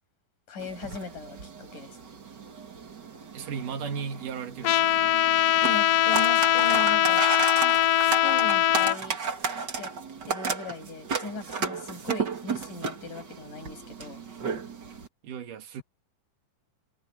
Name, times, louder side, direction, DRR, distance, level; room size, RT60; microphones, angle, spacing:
voice 1, 0.5-2.0 5.7-7.3 8.2-9.2 9.8-9.9 10.3-14.2, left 3 dB, 70° left, 8.9 m, -38 dB
sound 1, 0.6-15.1, right 5 dB, 35° right, 2.3 m, -34 dB
voice 2, 3.3-5.0 15.2-15.8, right 6 dB, 75° right, 3.2 m, -35 dB
Trumpet, 4.6-9.0, left 12 dB, 90° left, 1.3 m, -22 dB
omnidirectional pair, 3.9 m